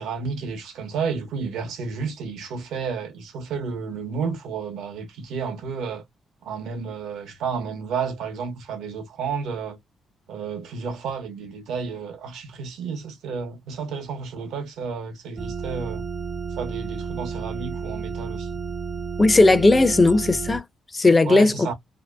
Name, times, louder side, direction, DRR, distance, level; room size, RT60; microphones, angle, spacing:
voice 1, 0.0-6.0 6.4-9.8 10.3-16.0 16.6-18.6 21.2-21.7, right 5 dB, 85° right, 0.8 m, -31 dB
sound 1, 15.4-20.6, right 5 dB, 40° right, 0.5 m, -32 dB
voice 2, 19.2-20.6 20.9-21.5, left 2 dB, 25° left, 0.4 m, -16 dB
2.7 x 2.1 x 2.2 m
cardioid pair, 75°, 0 cm